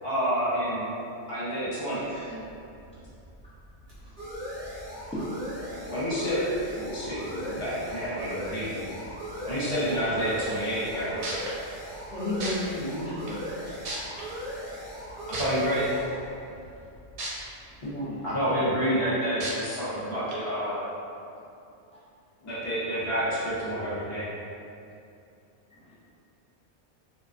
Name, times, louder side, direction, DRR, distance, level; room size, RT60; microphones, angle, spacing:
voice 1, 0.0-0.9 1.3-2.1 5.9-6.4 6.7-8.8 9.4-11.2 15.4-15.9 18.2-20.8 22.4-24.3, equal, 60° left, -10 dB, 1.1 m, -29 dB
voice 2, 1.9-2.5 5.1-5.2 25.7-25.9, equal, 10° left, -11 dB, 0.4 m, -39 dB
sound 1, 2.3-17.7, equal, 50° right, 0.9 m, -39 dB
sound 2, 11.2-11.5 12.4-12.5 13.3-13.4 13.8-14.2 15.3-15.4 17.2-17.3 17.8-17.9 19.4-19.5 20.3-20.4, right 2 dB, 80° right, 0.8 m, -33 dB
voice 3, 12.1-13.6 17.8-18.7, left 1 dB, 45° left, -14 dB, 0.7 m, -33 dB
2.5 x 2.2 x 2.4 m, 2.6 s
omnidirectional pair, 1.1 m